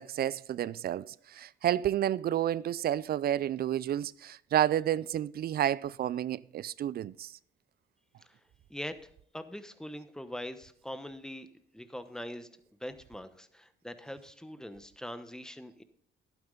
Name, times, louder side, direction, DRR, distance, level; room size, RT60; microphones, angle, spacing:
voice 1, 0.0-7.3, right 11 dB, 50° right, 0.4 m, -30 dB
voice 2, 8.7-11.5 11.7-12.5 12.8-15.8, left 1 dB, 5° left, 1.0 m, -42 dB
11.5 x 9.3 x 3.9 m
cardioid pair, 90°, 20 cm